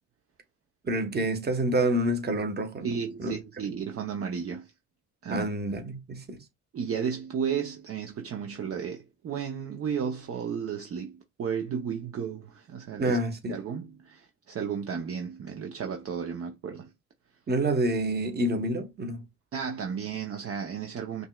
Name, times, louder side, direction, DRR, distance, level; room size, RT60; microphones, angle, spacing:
voice 1, 0.8-3.3 5.3-6.4 13.0-13.6 17.5-19.3, right 1 dB, 35° right, 1.1 m, -28 dB
voice 2, 2.8-4.7 5.2-5.5 6.7-13.2 13.5-16.9 19.5-21.3, right 7 dB, 50° right, 0.7 m, -33 dB
5.3 x 3.1 x 2.3 m
cardioid pair, 90°, 30 cm